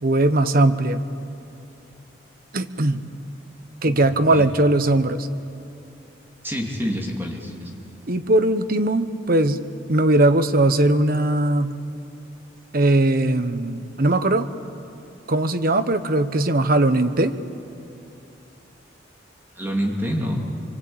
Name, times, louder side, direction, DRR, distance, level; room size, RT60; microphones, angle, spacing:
voice 1, 0.0-1.0 2.5-3.1 3.8-5.3 8.1-9.6 9.9-11.8 12.7-14.5 15.3-17.3, right 2 dB, 50° right, 10 dB, 1.1 m, -19 dB
voice 2, 6.4-7.7 19.5-20.4, equal, 10° right, -1 dB, 2.7 m, -27 dB
25.5 x 24.0 x 8.8 m, 2.7 s
head